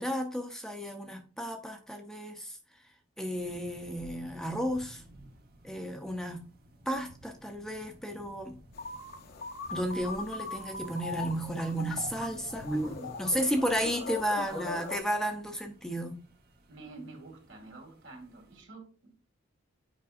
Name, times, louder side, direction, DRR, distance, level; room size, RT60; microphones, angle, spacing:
voice 1, 0.0-2.6 3.2-5.0 5.6-6.4 6.9-8.6 9.7-16.2, equal, 5° left, 4 dB, 0.7 m, -33 dB
sound 1, 3.3-18.6, equal, 50° right, 1.1 m, -54 dB
sound 2, 8.7-15.0, left 3 dB, 55° left, 0.8 m, -40 dB
voice 2, 16.7-19.3, right 3 dB, 75° right, 1 dB, 2.4 m, -48 dB
8.4 x 5.2 x 2.5 m, 0.36 s
head